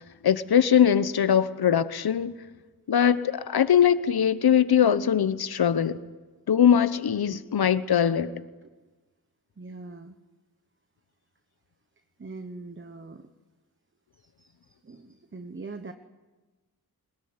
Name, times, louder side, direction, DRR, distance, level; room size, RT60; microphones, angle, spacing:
voice 1, 0.2-2.3 2.9-6.0 6.5-8.4, left 8 dB, 70° left, 13 dB, 1.0 m, -21 dB
voice 2, 9.6-10.2 12.2-13.3 14.2-15.9, right 3 dB, 30° right, 8 dB, 1.2 m, -42 dB
22.0 x 20.5 x 9.7 m, 1.2 s
wide cardioid pair, 95°, 40 cm